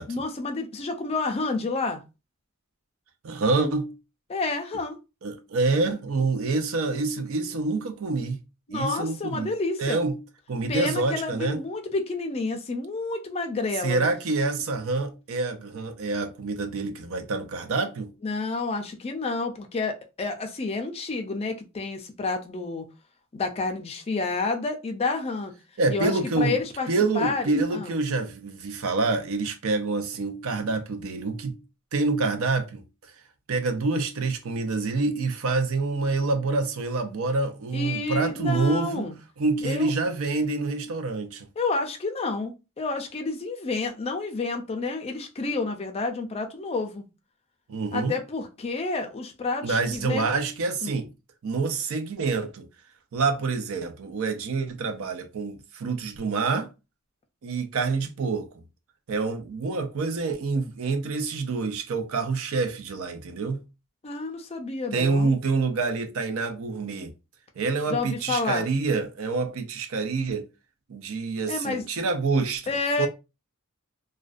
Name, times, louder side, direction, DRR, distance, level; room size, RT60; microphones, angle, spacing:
voice 1, 0.1-2.0 4.3-5.0 8.7-10.0 10.7-14.1 18.2-22.9 23.3-25.5 25.9-26.9 27.1-27.9 37.7-39.1 39.6-39.9 41.6-47.1 47.9-50.3 50.8-51.0 64.0-65.3 67.9-68.7 71.5-71.8 72.7-73.1, left 3 dB, 25° left, 0.4 m, -29 dB
voice 2, 3.2-3.9 5.2-8.4 8.7-9.5 9.8-10.2 10.5-11.6 13.8-18.1 25.8-26.6 26.9-31.6 31.9-32.8 33.5-39.1 39.4-41.5 47.7-48.2 49.6-51.1 51.4-52.7 53.1-56.7 57.4-58.5 59.1-63.6 64.9-67.1 67.6-70.5 70.9-73.1, right 3 dB, 65° right, 0.5 m, -27 dB
2.4 x 2.1 x 2.4 m
head